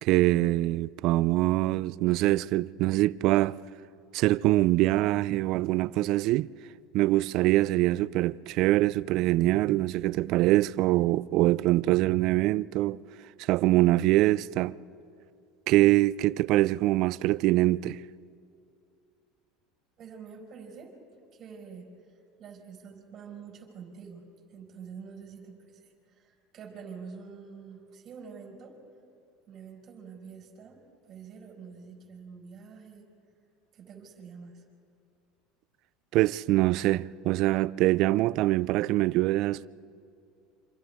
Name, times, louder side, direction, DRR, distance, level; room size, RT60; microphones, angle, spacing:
voice 1, 0.0-3.6 4.1-6.5 6.9-13.0 13.5-14.7 15.7-18.0 36.1-39.7, right 17 dB, 60° right, 0.4 m, -24 dB
voice 2, 20.0-21.0 21.3-24.2 24.5-28.8 29.5-33.1 33.7-34.6, right 6 dB, 45° right, 5.3 m, -46 dB
28.0 x 26.5 x 3.6 m
supercardioid pair, 100°, 0 cm